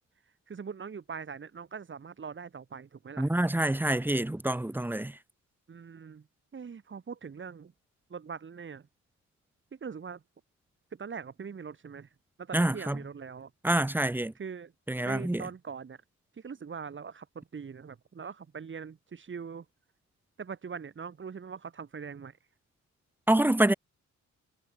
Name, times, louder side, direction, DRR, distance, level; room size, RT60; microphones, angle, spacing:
voice 1, 0.5-3.3 5.7-6.3 6.5-7.7 8.1-8.9 9.7-10.2 10.9-12.1 12.4-13.5 14.4-14.7 15.0-16.0 16.4-19.7 20.4-22.4, right 6 dB, 40° right, 7.3 m, -42 dB
voice 2, 3.2-5.2 12.5-13.0 13.6-14.3 14.9-15.4 23.3-23.7, right 1 dB, 5° right, 1.0 m, -26 dB
wide cardioid pair, 145°, 31 cm